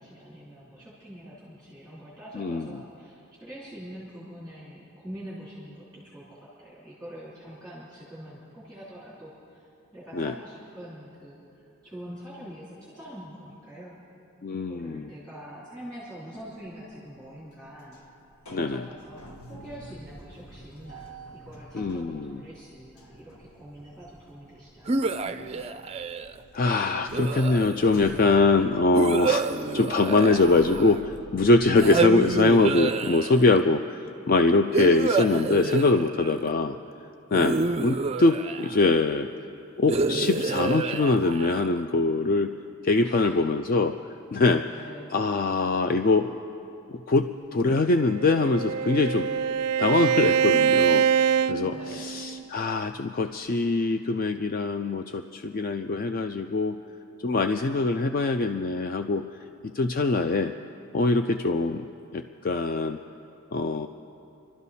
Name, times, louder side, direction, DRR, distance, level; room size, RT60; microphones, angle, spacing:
voice 1, 0.0-9.7 9.9-14.0 14.6-18.2 18.5-25.8 43.0-43.5 44.6-45.1 51.6-52.1, equal, 5° left, -10 dB, 3.2 m, -44 dB
voice 2, 2.4-2.8 10.1-10.3 14.4-15.1 18.5-18.8 21.7-22.4 26.5-29.5 29.7-34.0 34.3-36.8 37.3-39.3 39.8-42.5 42.8-44.7 45.1-46.3 46.9-49.3 49.8-56.8 57.2-59.2 59.7-60.5 60.9-61.9 62.1-63.0 63.5-63.9, left 3 dB, 40° left, 7 dB, 0.4 m, -23 dB
sound 1, 16.5-16.9 17.3-31.9, right 1 dB, 80° left, 1.4 m, -47 dB
sound 2, 24.9-26.4 27.1-28.0 28.9-31.1 31.8-33.6 34.7-36.5 37.3-39.0 39.9-41.8, right 3 dB, 30° right, 0.4 m, -28 dB
Bowed string instrument, 48.0-52.5, right 7 dB, 90° right, 0.4 m, -24 dB
27.0 x 12.0 x 4.2 m, 2.8 s
head